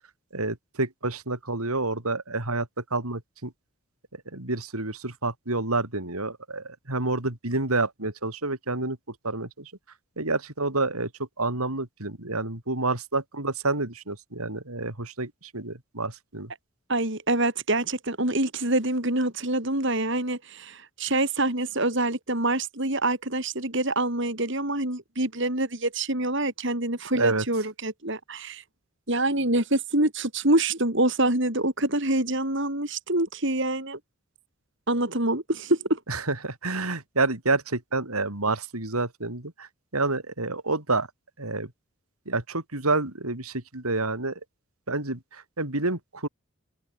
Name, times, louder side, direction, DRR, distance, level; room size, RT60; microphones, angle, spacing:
voice 1, 0.3-3.5 4.1-9.7 10.2-11.1 11.4-16.5 27.1-27.4 36.1-41.1 41.4-41.7 42.3-44.4 44.9-46.3, right 3 dB, 80° right, 4.2 m, -29 dB
voice 2, 16.9-28.6 29.1-34.0 34.9-36.0, right 2 dB, 55° right, 4.0 m, -26 dB
head